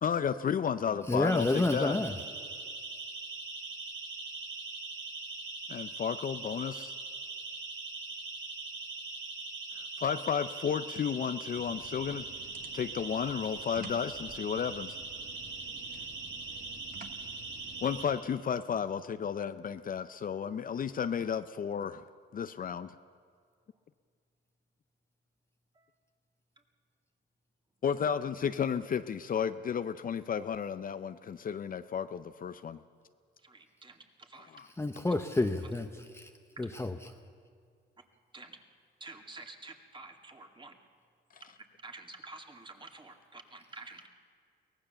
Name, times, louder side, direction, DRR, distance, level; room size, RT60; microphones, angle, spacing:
voice 1, 0.0-2.0 5.7-6.9 9.7-12.3 12.7-15.0 17.8-22.0 22.3-23.0 27.8-32.8 34.5-34.7, left 7 dB, 45° left, 11 dB, 0.6 m, -33 dB
voice 2, 1.1-2.1 34.8-36.3 36.6-37.0, left 2 dB, 15° left, 6 dB, 0.9 m, -29 dB
Siren, 1.3-18.0, right 3 dB, 75° right, 7.0 m, -41 dB
sound 1, 11.5-18.2, right 5 dB, 45° right, 1.5 m, -52 dB
voice 3, 33.4-34.6 36.6-36.7 38.3-38.6 39.0-40.7 41.4-41.5 41.8-44.1, right 3 dB, 25° right, 4 dB, 2.2 m, -49 dB
23.5 x 18.0 x 6.9 m, 2.1 s
cardioid pair, 90°, 20 cm